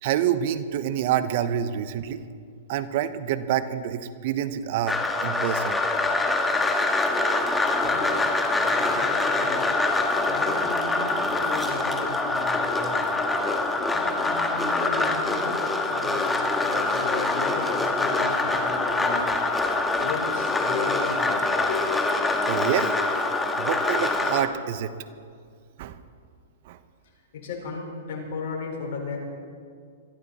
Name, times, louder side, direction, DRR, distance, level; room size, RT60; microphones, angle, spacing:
voice 1, 0.0-2.2 2.7-5.8 22.5-22.9 23.6-24.9 25.8-26.0 26.6-26.8, right 10 dB, 55° right, 13 dB, 0.9 m, -27 dB
sound 1, 4.9-24.5, left 2 dB, 10° left, 1.6 m, -24 dB
voice 2, 7.9-8.2 8.5-9.8 10.2-13.1 13.9-15.6 15.9-16.3 16.6-19.3 19.9-21.8 27.3-29.2, left 4 dB, 60° left, 0 dB, 5.0 m, -35 dB
22.0 x 14.5 x 4.3 m, 2.2 s
hypercardioid pair, 125°, 0 cm